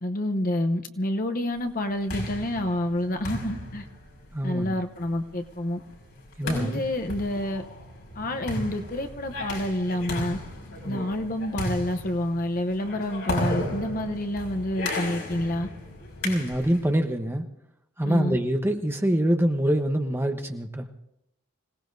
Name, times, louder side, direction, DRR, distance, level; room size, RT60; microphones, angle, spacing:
voice 1, 0.0-3.9 4.4-5.8 6.4-7.6 8.1-10.4 10.8-15.7 18.0-18.4, left 1 dB, 40° left, 6 dB, 0.8 m, -28 dB
sound 1, 1.7-16.9, left 1 dB, 80° left, 5.5 m, -35 dB
voice 2, 4.3-4.7 6.4-6.8 10.8-11.1 16.2-17.4 18.0-20.9, equal, 10° right, 5 dB, 1.0 m, -25 dB
26.0 x 17.5 x 2.7 m, 0.78 s
head